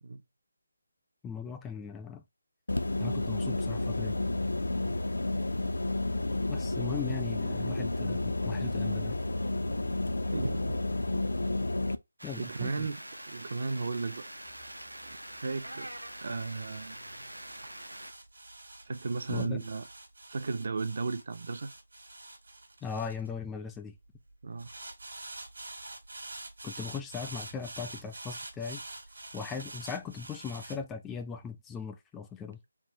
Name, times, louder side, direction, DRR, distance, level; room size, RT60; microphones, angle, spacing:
voice 1, 1.2-2.2 3.0-4.2 6.5-9.2 12.2-12.9 19.3-19.6 22.8-23.9 26.6-28.8 29.3-32.6, left 6 dB, 10° left, 0.4 m, -39 dB
sound 1, 2.7-12.0, left 2 dB, 70° left, 0.5 m, -31 dB
voice 2, 10.2-10.8 12.4-13.0 13.3-14.3 15.0-17.0 18.8-19.8 20.3-21.7 24.4-24.7, right 4 dB, 50° right, 0.5 m, -35 dB
sound 2, 12.2-18.1, right 1 dB, 85° right, 0.7 m, -44 dB
sound 3, 14.4-23.9 24.6-30.8, right 2 dB, 65° right, 1.5 m, -46 dB
3.6 x 2.4 x 4.3 m
figure-of-eight pair, 155°, 0 cm